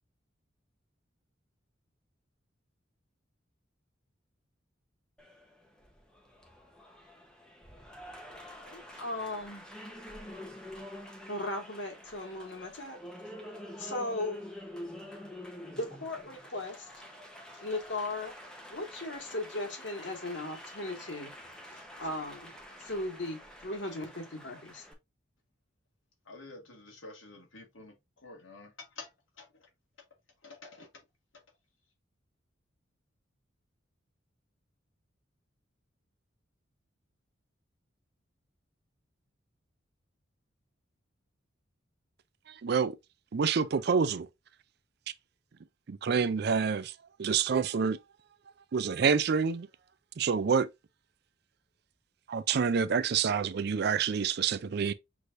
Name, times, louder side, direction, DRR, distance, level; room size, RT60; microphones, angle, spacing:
Applause, 5.2-24.9, equal, 5° left, 0.9 m, -47 dB
voice 1, 8.6-9.6 11.3-13.0 13.8-14.5 15.7-16.9 17.6-18.3 18.7-21.3 21.7-24.8, left 2 dB, 65° left, 1.6 m, -37 dB
voice 2, 26.3-29.1 29.4-29.7 30.4-30.9, left 3 dB, 90° left, 1.7 m, -49 dB
voice 3, 42.6-42.9 43.3-44.3 45.9-46.9 47.2-48.0 48.7-49.7 50.2-50.7 52.3-54.9, right 6 dB, 55° right, 0.4 m, -27 dB
6.2 x 3.3 x 2.5 m
head